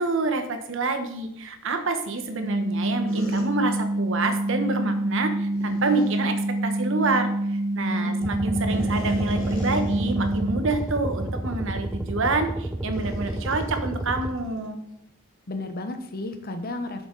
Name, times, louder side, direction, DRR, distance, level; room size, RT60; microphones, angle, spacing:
voice 1, 0.0-14.8, right 3 dB, 60° right, 7 dB, 1.0 m, -27 dB
sound 1, 2.4-10.6, right 1 dB, 35° right, 0.9 m, -27 dB
sound 2, 3.1-3.4 5.5-6.2 8.7-10.4 10.8-10.9 11.5-11.7 12.9-14.7, right 1 dB, 65° left, 2.7 m, -40 dB
voice 2, 7.9-8.8 15.5-17.1, left 2 dB, 45° left, 7 dB, 0.9 m, -34 dB
sound 3, 8.2-14.3, right 1 dB, 5° right, 0.5 m, -30 dB
8.0 x 6.6 x 3.9 m, 0.78 s
head